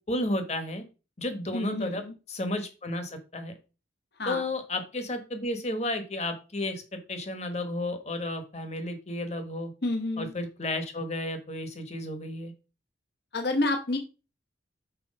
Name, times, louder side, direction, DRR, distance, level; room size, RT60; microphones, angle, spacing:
voice 1, 0.1-0.8 1.2-2.0 2.3-3.5 4.3-9.7 10.2-12.5, left 1 dB, 35° left, 7 dB, 1.2 m, -32 dB
voice 2, 1.5-2.1 4.2-4.4 9.8-10.3 13.3-14.0, left 2 dB, 55° left, 5 dB, 0.9 m, -29 dB
6.1 x 4.4 x 5.3 m, 0.32 s
head